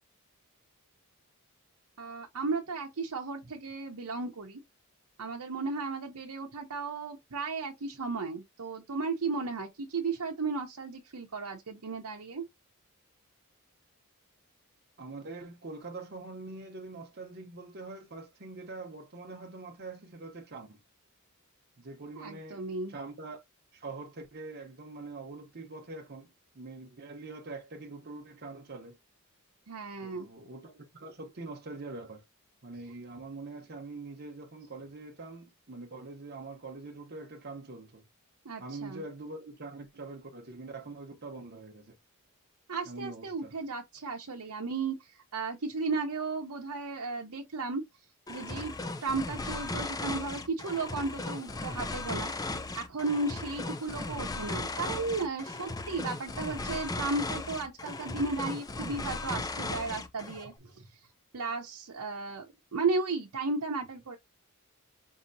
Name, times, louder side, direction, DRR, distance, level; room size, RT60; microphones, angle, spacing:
voice 1, 2.0-4.6 5.2-12.4 22.2-22.9 29.7-30.3 38.4-39.0 42.7-47.8 48.3-48.7 49.0-52.3 52.8-60.9 61.3-62.5 62.7-64.2, right 3 dB, 85° right, 0.8 m, -34 dB
voice 2, 15.0-20.8 21.8-23.4 23.7-29.0 30.0-32.2 32.6-38.0 38.6-42.0 42.8-43.5, right 3 dB, 45° right, 0.9 m, -44 dB
sound 1, 48.3-60.5, left 2 dB, 15° left, 0.4 m, -37 dB
5.4 x 2.8 x 2.7 m
head